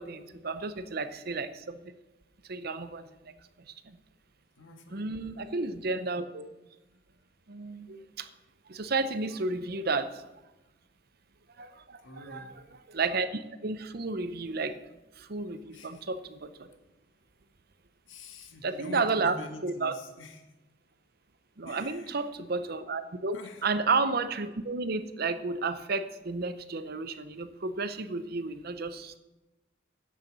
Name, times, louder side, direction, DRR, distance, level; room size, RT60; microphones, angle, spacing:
voice 1, 0.0-1.9 2.5-3.1 3.6-4.0 4.9-6.5 7.5-8.3 8.7-10.3 11.6-12.4 12.9-14.7 15.2-16.8 18.6-19.9 21.6-29.2, right 3 dB, 50° right, 11 dB, 0.7 m, -32 dB
voice 2, 4.6-5.1 12.0-12.5 15.7-16.0 18.1-20.5 21.6-22.3 23.3-23.7, left 2 dB, 75° left, 4 dB, 1.6 m, -46 dB
10.0 x 6.8 x 7.4 m, 1.0 s
head